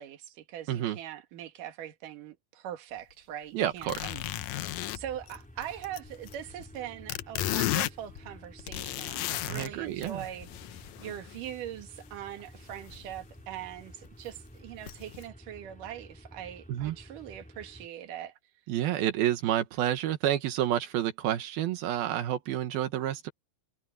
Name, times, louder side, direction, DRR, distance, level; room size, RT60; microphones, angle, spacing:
voice 1, 0.0-18.3, right 11 dB, 65° right, 3.2 m, -42 dB
voice 2, 3.5-4.0 9.5-10.2 16.7-17.0 18.7-23.3, right 12 dB, 85° right, 3.1 m, -29 dB
sound 1, 3.7-17.9, equal, ahead, 4.0 m, -52 dB
sound 2, 3.8-6.8 7.1-9.7 10.0-11.4 12.7-13.1 13.4-13.5 14.1-14.2 14.9-15.2, left 15 dB, 85° left, 1.6 m, -34 dB
omnidirectional pair, 4.2 m